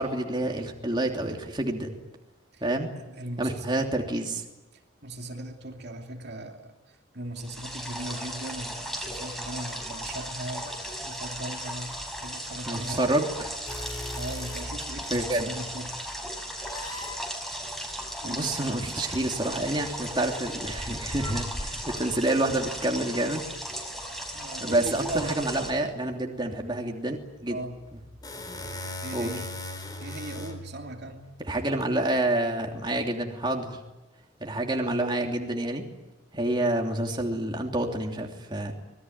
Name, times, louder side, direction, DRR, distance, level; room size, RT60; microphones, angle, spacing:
voice 1, 0.0-1.9 2.6-2.9 3.4-4.4 12.7-13.5 15.1-15.5 18.2-23.4 24.6-27.6 29.1-29.4 31.4-33.8 34.4-35.8 36.3-38.7, right 1 dB, 20° right, 2 dB, 3.0 m, -28 dB
voice 2, 2.9-3.8 5.0-10.7 11.0-13.3 14.1-16.0 18.2-18.8 24.3-25.4 27.5-27.8 29.0-29.5 30.0-31.3, right 1 dB, 50° right, 3 dB, 2.7 m, -38 dB
sound 1, 7.4-25.7, equal, ahead, 5.1 m, -36 dB
sound 2, 13.7-15.3 16.6-17.2 19.2-19.4 20.6-22.2 27.7-31.9, left 1 dB, 20° left, 3.9 m, -39 dB
25.5 x 20.5 x 9.5 m, 1.0 s
head